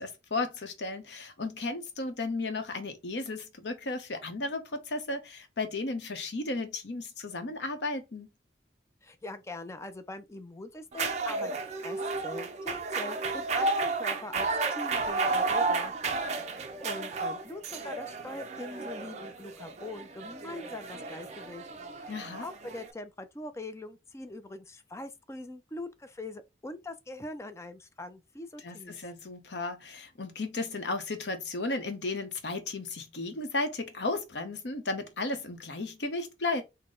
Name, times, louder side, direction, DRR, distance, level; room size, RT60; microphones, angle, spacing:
voice 1, 0.0-8.3 22.1-22.4 28.6-36.6, left 2 dB, 80° left, 0.8 m, -34 dB
voice 2, 9.0-11.5 11.8-15.9 16.8-21.7 22.0-22.1 22.4-29.0, left 2 dB, 15° left, 0.4 m, -42 dB
sound 1, 10.9-22.9, right 3 dB, 40° right, 0.5 m, -32 dB
4.0 x 2.1 x 3.7 m
head